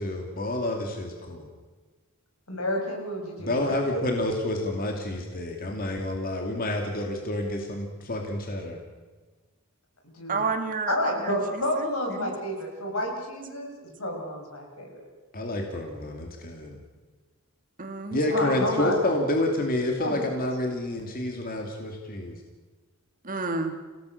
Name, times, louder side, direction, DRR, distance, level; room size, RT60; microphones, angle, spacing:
voice 1, 0.0-1.5 3.4-8.8 15.3-16.8 18.1-22.4, left 1 dB, 40° left, 2 dB, 2.7 m, -29 dB
voice 2, 2.5-4.1 10.0-10.5 10.9-13.7 14.0-14.9 18.3-19.0 20.0-20.2, left 1 dB, 75° left, 1 dB, 6.9 m, -30 dB
voice 3, 10.3-11.3 11.8-11.9 12.1-12.3 17.8-18.4 23.2-23.7, right 4 dB, 40° right, 6 dB, 2.2 m, -30 dB
29.5 x 17.5 x 6.7 m, 1.4 s
head